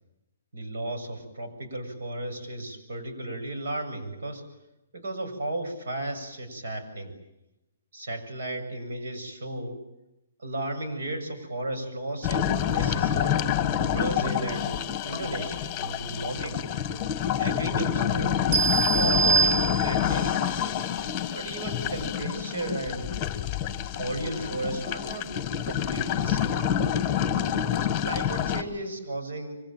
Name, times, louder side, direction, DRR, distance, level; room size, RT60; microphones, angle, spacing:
voice 1, 0.5-4.4 4.9-7.1 7.9-9.8 10.4-13.5 13.9-16.6 17.4-18.5 18.9-20.6 21.3-23.2 23.7-25.3 25.6-26.7 27.8-29.6, right 1 dB, 75° right, 6 dB, 7.4 m, -34 dB
sound 1, 12.2-28.6, left 9 dB, 15° left, 1.6 m, -27 dB
sound 2, 18.5-20.3, right 5 dB, 30° right, 1.9 m, -24 dB
26.0 x 25.0 x 9.1 m, 0.91 s
hypercardioid pair, 175°, 0 cm